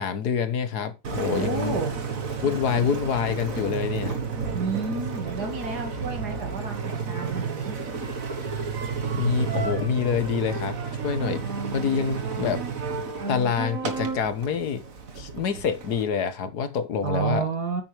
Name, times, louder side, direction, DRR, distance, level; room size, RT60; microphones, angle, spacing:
voice 1, 0.0-1.8 2.4-4.2 9.2-11.4 11.7-12.7 13.3-14.9 15.1-17.5, left 7 dB, 80° left, 1.8 m, -26 dB
Engine, 1.0-16.0, right 5 dB, 60° right, 2.0 m, -31 dB
voice 2, 1.3-1.9 4.5-7.8 17.0-17.8, right 4 dB, 85° right, 2.7 m, -30 dB
9.6 x 9.0 x 3.4 m
omnidirectional pair, 1.7 m